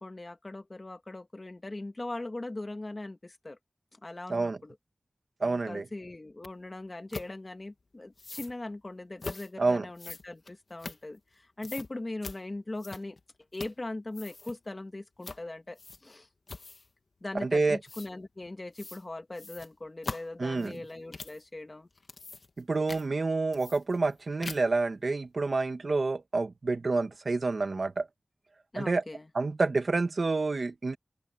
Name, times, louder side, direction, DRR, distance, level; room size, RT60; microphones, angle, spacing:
voice 1, 0.0-3.6 3.9-4.8 5.4-13.2 13.5-16.3 17.2-21.9 28.7-29.3, left 2 dB, 45° left, 2.3 m, -40 dB
voice 2, 5.4-5.8 9.6-9.8 17.4-17.8 20.4-20.7 22.6-28.0 28.8-29.0 29.3-31.0, right 3 dB, 75° right, 1.8 m, -28 dB
sound 1, 6.4-6.5 7.1-7.3 8.2-8.5 9.2-9.5 10.0-11.3 11.6-11.9 12.2-12.4 12.8-13.2 13.5-13.8 14.1-14.6 15.2-15.4 15.8-16.1 16.5-16.9 17.9-18.1 18.7-19.0 19.3-21.4 21.9-22.6 22.9-23.0 23.5-24.1 24.4-24.8, left 3 dB, 80° left, 1.8 m, -42 dB
open air
wide cardioid pair, 60°, 0 cm